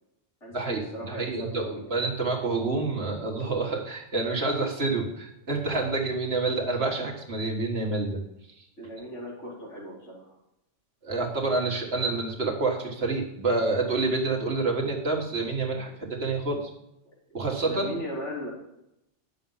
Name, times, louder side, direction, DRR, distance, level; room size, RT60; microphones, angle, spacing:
voice 1, 0.4-1.9 8.8-10.4 17.6-18.5, equal, 80° left, -5 dB, 4.3 m, -38 dB
voice 2, 1.1-8.2 11.0-16.7 17.3-18.0, right 3 dB, 60° right, 0 dB, 2.0 m, -28 dB
10.5 x 6.9 x 5.5 m, 0.84 s
omnidirectional pair, 1.2 m